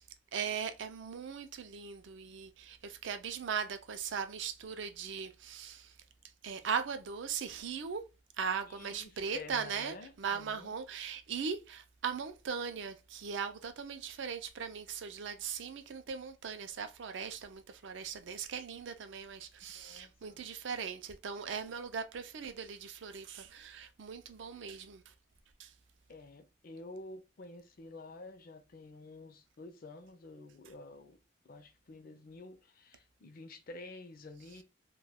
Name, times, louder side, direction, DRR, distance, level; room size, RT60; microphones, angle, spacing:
voice 1, 0.3-6.0 6.4-8.0 8.4-25.1 25.6-25.7, right 6 dB, 60° right, 0.4 m, -39 dB
voice 2, 8.8-10.7 19.7-20.4 26.1-31.2 31.4-34.6, left 2 dB, 45° left, 0.4 m, -50 dB
2.2 x 2.2 x 3.3 m
head